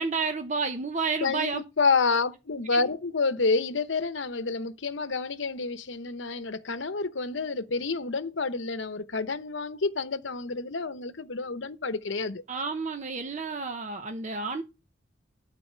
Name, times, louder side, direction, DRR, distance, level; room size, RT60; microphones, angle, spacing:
voice 1, 0.0-1.6 12.5-14.6, right 4 dB, 40° right, 0.8 m, -30 dB
voice 2, 1.2-12.4, left 4 dB, 75° left, 0.9 m, -29 dB
12.0 x 4.2 x 6.6 m
head